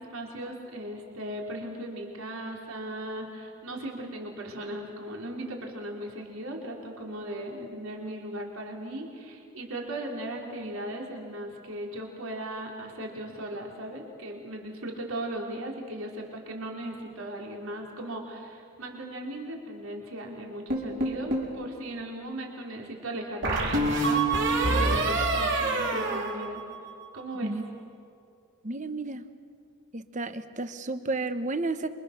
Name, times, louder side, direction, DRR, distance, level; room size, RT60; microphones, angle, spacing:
voice 1, 0.0-26.6 27.1-27.5, right 1 dB, 75° right, 0 dB, 3.7 m, -37 dB
sound 1, 20.7-21.5 23.4-27.1, right 2 dB, 55° right, 4.4 m, -26 dB
voice 2, 28.6-29.3 29.9-31.9, right 2 dB, 35° right, 11 dB, 1.0 m, -32 dB
27.0 x 24.5 x 6.6 m, 2.4 s
head